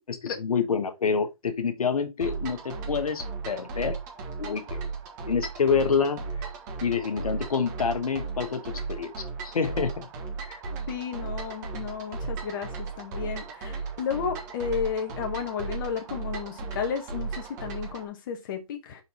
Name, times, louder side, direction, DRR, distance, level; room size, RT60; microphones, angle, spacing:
voice 1, 0.1-4.0 4.4-4.8 5.3-6.2 6.8-9.9 10.5-10.6, left 6 dB, 70° left, 1.2 m, -27 dB
sound 1, 2.2-18.1, right 4 dB, 30° right, 1.4 m, -36 dB
voice 2, 10.9-19.0, left 7 dB, 35° left, 1.0 m, -33 dB
5.7 x 4.3 x 4.0 m
hypercardioid pair, 150°, 19 cm